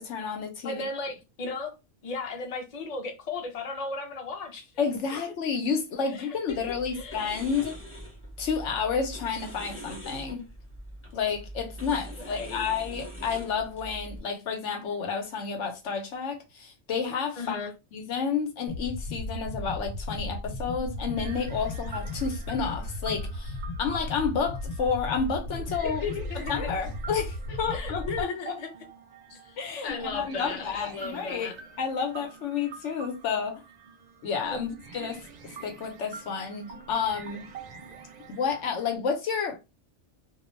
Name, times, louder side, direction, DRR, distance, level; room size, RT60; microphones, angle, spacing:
voice 1, 0.0-0.8 4.8-7.8 8.4-10.5 11.1-17.6 17.9-23.5 23.8-26.0 26.5-28.6 29.6-31.5 31.8-33.6 34.2-37.4 38.3-39.6, left 6 dB, 90° left, 1.1 m, -30 dB
voice 2, 0.6-1.7 2.0-4.7 5.1-5.2 6.0-6.6 6.9-7.2 12.2-12.7 17.4-17.7 25.8-26.7 27.5-28.7 29.3-29.6 29.8-31.5 34.5-34.6, left 4 dB, 40° left, 0.6 m, -35 dB
sound 1, 6.5-14.2, right 1 dB, 10° left, 0.9 m, -42 dB
sound 2, 18.7-28.2, left 1 dB, 70° left, 0.9 m, -35 dB
sound 3, 20.8-39.0, right 5 dB, 50° right, 0.5 m, -47 dB
2.4 x 2.2 x 3.1 m
omnidirectional pair, 1.2 m